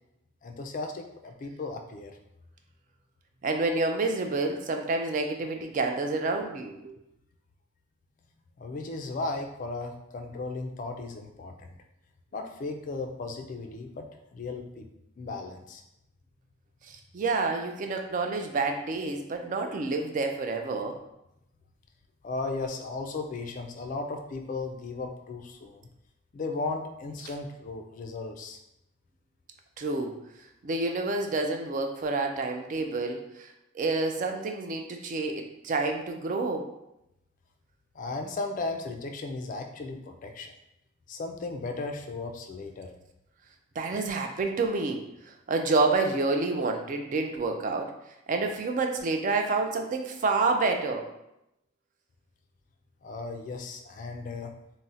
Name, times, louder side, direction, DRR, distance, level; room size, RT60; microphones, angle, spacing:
voice 1, 0.4-2.2 8.6-11.7 12.3-14.0 14.3-14.9 15.2-15.8 22.2-25.9 26.3-28.6 37.9-40.5 41.1-42.9 53.0-54.5, left 3 dB, 40° left, 5 dB, 0.3 m, -36 dB
voice 2, 3.4-6.9 16.9-21.0 29.8-30.2 30.6-33.5 33.7-36.7 43.8-47.9 48.3-51.1, right 3 dB, 40° right, 4 dB, 0.3 m, -28 dB
2.4 x 2.0 x 3.9 m, 0.86 s
head